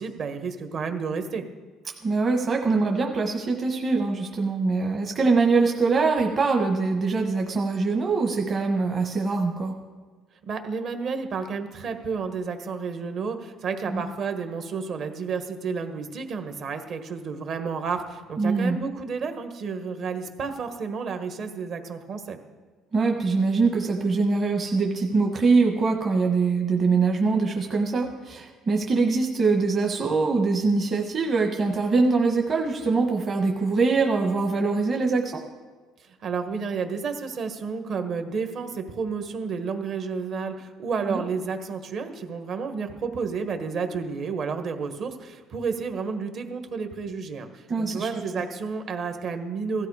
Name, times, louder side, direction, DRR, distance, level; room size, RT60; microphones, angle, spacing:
voice 1, 0.0-1.5 10.5-22.4 36.0-49.9, right 5 dB, 45° right, 6 dB, 1.4 m, -31 dB
voice 2, 2.0-9.8 13.8-14.0 18.4-18.8 22.9-35.4 41.1-41.2 47.7-48.1, right 4 dB, 30° right, 2 dB, 1.2 m, -23 dB
16.5 x 13.5 x 4.8 m, 1.4 s
cardioid pair, 140°, 0 cm